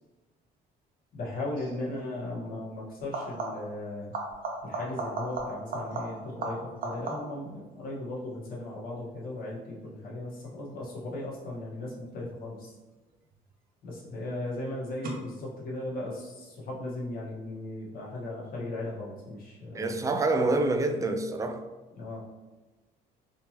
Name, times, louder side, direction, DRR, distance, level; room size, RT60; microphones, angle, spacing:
voice 1, 1.1-4.1 4.6-12.7 13.8-20.0 22.0-22.2, left 2 dB, 60° left, 1.3 m, -37 dB
sound 1, 1.6-1.8 3.0-3.8 4.1-7.5 12.9-13.5 15.0-15.1, right 2 dB, 60° right, 0.8 m, -36 dB
voice 2, 19.7-21.6, right 2 dB, 20° right, 0.3 m, -27 dB
3.5 x 2.8 x 2.9 m
cardioid pair, 110°, 17 cm